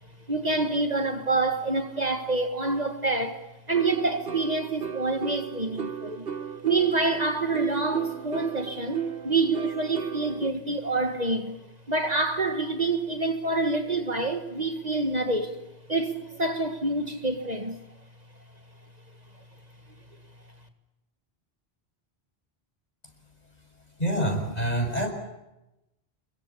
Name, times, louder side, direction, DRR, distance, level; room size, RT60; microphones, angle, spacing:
voice 1, 0.3-6.3 6.6-11.6 11.9-17.8, right 3 dB, 40° right, 1.8 m, -27 dB
sound 1, 3.7-10.5, right 8 dB, 65° right, 1.5 m, -34 dB
voice 2, 24.0-25.1, right 1 dB, 40° left, 6.7 m, -26 dB
29.0 x 22.5 x 8.5 m
omnidirectional pair, 1.1 m